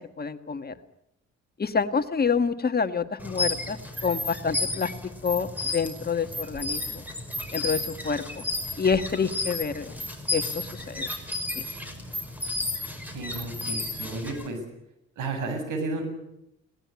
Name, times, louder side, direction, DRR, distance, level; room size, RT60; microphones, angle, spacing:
voice 1, 0.2-0.7 1.6-4.9 5.2-7.0 7.5-8.4 8.8-10.0 10.3-11.1 11.5-11.6, left 5 dB, 30° left, 8 dB, 1.6 m, -27 dB
sound 1, 3.2-14.5, left 2 dB, 5° right, 5.7 m, -33 dB
voice 2, 13.0-14.6 15.2-16.0, right 3 dB, 85° right, 7 dB, 7.8 m, -32 dB
21.0 x 18.5 x 9.5 m, 0.82 s
cardioid pair, 90°, 30 cm